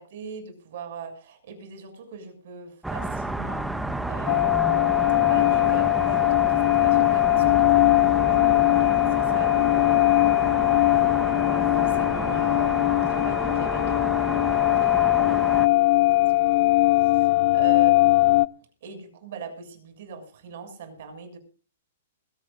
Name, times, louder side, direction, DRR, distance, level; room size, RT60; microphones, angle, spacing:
voice 1, 0.0-3.6 4.1-10.2 10.9-14.5 14.8-15.7 16.1-18.2 18.8-21.4, right 5 dB, 60° right, 7 dB, 6.8 m, -42 dB
sound 1, 2.8-15.7, right 2 dB, 5° right, 1.1 m, -31 dB
sound 2, 4.3-18.5, left 19 dB, 45° left, 0.6 m, -20 dB
22.0 x 17.0 x 2.6 m, 0.37 s
hypercardioid pair, 115°, 0 cm